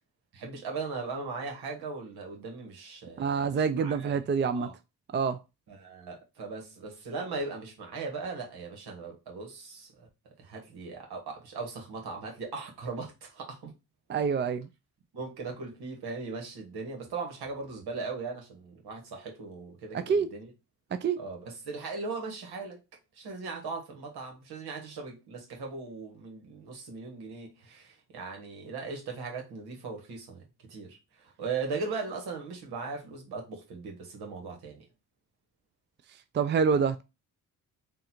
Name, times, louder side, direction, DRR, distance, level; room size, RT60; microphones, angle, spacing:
voice 1, 0.3-4.2 4.5-4.7 5.7-10.1 10.4-13.7 15.1-20.5 21.2-22.8 23.1-34.8 36.7-36.9, right 4 dB, 90° right, 1.5 m, -39 dB
voice 2, 3.2-4.7 5.1-5.4 14.1-14.7 19.9-20.3 20.9-21.2 36.3-37.0, right 6 dB, 30° right, 0.4 m, -26 dB
3.8 x 2.5 x 4.3 m
cardioid pair, 80°, 37 cm